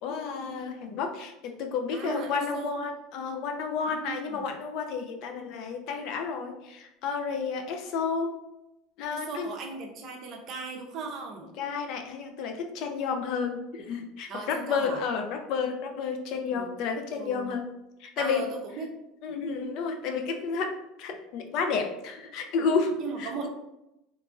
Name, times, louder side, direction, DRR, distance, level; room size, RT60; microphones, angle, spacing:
voice 1, 0.0-8.4 9.0-9.5 11.6-17.7 18.0-18.5 19.2-23.5, left 5 dB, 55° left, 4 dB, 0.3 m, -31 dB
voice 2, 1.9-2.8 3.8-4.5 9.1-11.5 14.3-15.0 16.5-16.7 17.1-17.6 18.2-19.0 23.0-23.5, right 4 dB, 45° right, 2 dB, 0.5 m, -38 dB
2.9 x 2.4 x 2.4 m, 0.90 s
supercardioid pair, 140°, 0 cm